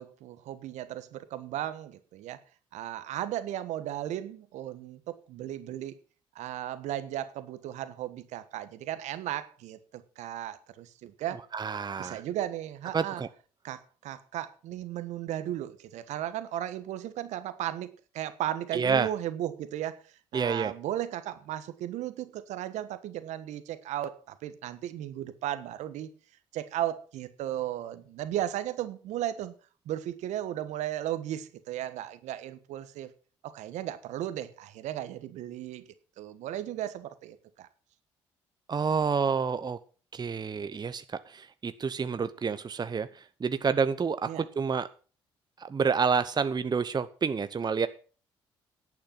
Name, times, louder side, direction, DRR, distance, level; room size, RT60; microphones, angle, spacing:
voice 1, 0.0-2.4 2.7-6.0 6.3-11.4 12.0-13.2 13.6-20.0 20.3-26.1 26.5-29.5 29.8-33.1 33.4-35.9 36.2-37.7 44.3-44.4, right 12 dB, 70° right, 12 dB, 1.3 m, -35 dB
voice 2, 11.5-12.2 12.9-13.3 18.7-19.1 20.3-20.7 38.7-39.8 40.1-44.9 45.6-47.9, right 5 dB, 35° right, 12 dB, 0.9 m, -29 dB
10.5 x 8.7 x 5.9 m, 0.38 s
hypercardioid pair, 50°, 12 cm